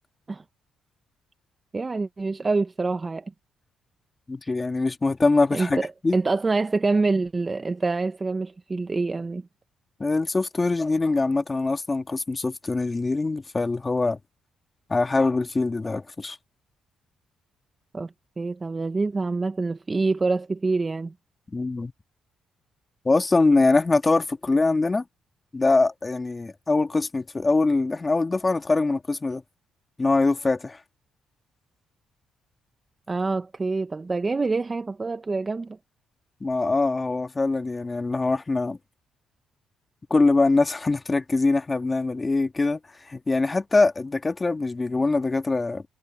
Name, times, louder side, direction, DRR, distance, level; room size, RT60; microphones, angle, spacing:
voice 1, 1.7-3.3 5.5-9.4 17.9-21.1 33.1-35.8, right 3 dB, 25° right, 0.7 m, -26 dB
voice 2, 4.3-6.2 10.0-14.2 14.9-16.4 21.5-21.9 23.1-25.0 25.5-29.4 30.0-30.8 36.4-38.8 40.1-45.8, left 3 dB, 25° left, 1.8 m, -23 dB
cardioid pair, 90°, 0 cm